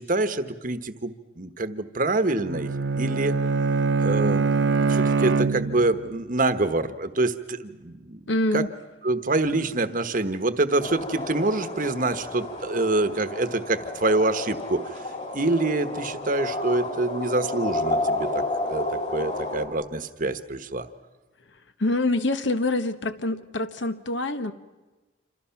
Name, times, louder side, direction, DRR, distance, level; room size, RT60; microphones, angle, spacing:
voice 1, 0.0-3.3 4.0-8.2 8.5-8.6 9.0-15.0 15.3-18.4 18.7-18.9 19.1-20.9, right 2 dB, 45° right, 11 dB, 1.2 m, -26 dB
Bowed string instrument, 2.5-6.1, right 4 dB, 70° right, 0.7 m, -23 dB
voice 2, 8.3-8.7 21.8-24.5, left 2 dB, 70° left, 10 dB, 1.4 m, -25 dB
sound 1, 10.8-19.7, left 2 dB, 40° left, 3.9 m, -31 dB
28.0 x 26.5 x 5.9 m, 1.2 s
head